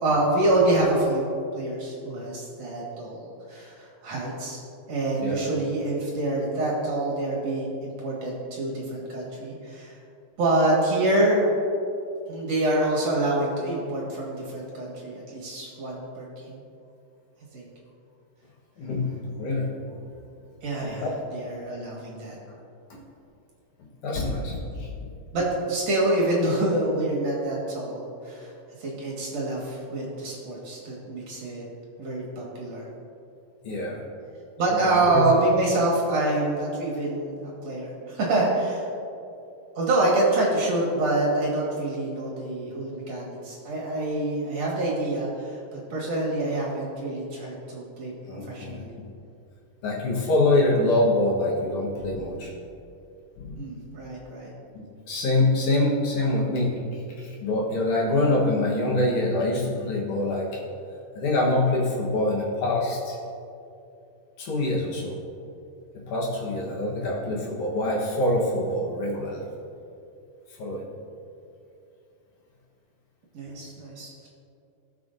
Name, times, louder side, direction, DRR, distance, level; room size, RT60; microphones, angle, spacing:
voice 1, 0.0-4.6 4.9-9.9 10.4-11.4 12.3-16.6 17.5-17.7 20.6-22.4 25.3-28.5 28.8-31.6 32.0-32.9 34.6-38.9 39.8-49.0 53.6-54.5 73.3-74.1, right 2 dB, 55° right, -4 dB, 2.6 m, -26 dB
voice 2, 18.8-19.7 20.9-21.1 22.9-23.0 23.8-25.1 33.6-34.0 34.7-35.2 48.3-48.8 49.8-52.5 53.4-53.6 54.7-56.8 57.2-60.6 61.2-63.2 64.4-65.1 66.1-69.4 70.6-70.8, left 2 dB, 70° left, -3 dB, 2.4 m, -25 dB
17.0 x 6.4 x 2.6 m, 2.6 s
omnidirectional pair, 3.9 m